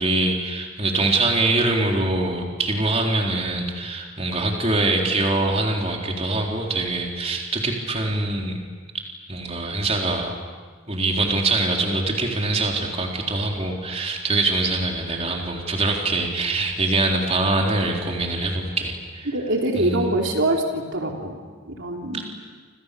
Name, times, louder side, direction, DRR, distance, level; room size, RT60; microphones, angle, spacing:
voice 1, 0.0-8.6 8.9-10.3 10.9-19.3 19.8-20.1, right 2 dB, 30° right, 0 dB, 3.9 m, -24 dB
voice 2, 19.3-22.2, right 1 dB, 65° right, 1 dB, 3.4 m, -24 dB
30.0 x 27.5 x 6.9 m, 1.5 s
head